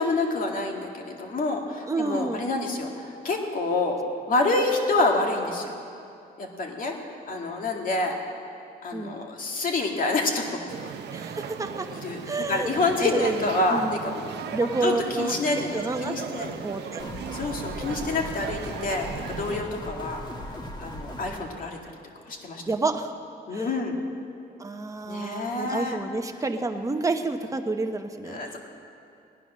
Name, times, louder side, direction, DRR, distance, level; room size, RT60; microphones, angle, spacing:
voice 1, 0.0-4.0 4.3-5.7 6.4-7.0 7.3-8.2 8.8-10.9 12.0-14.3 14.6-16.5 17.3-20.2 20.8-21.8 22.3-22.6 23.5-24.0 25.0-26.0 28.3-28.6, left 2 dB, 55° left, 1 dB, 2.1 m, -27 dB
voice 2, 1.9-2.4 8.9-9.2 11.1-11.9 12.2-12.7 13.0-13.4 13.7-14.1 14.5-17.1 22.7-23.2 23.5-23.7 24.6-28.4, right 3 dB, 20° right, 5 dB, 1.0 m, -29 dB
sound 1, 10.7-19.6, right 7 dB, 85° right, 0.7 m, -37 dB
sound 2, 17.0-21.4, left 1 dB, 25° left, 1.9 m, -38 dB
18.5 x 9.9 x 6.3 m, 2.5 s
cardioid pair, 120°, 17 cm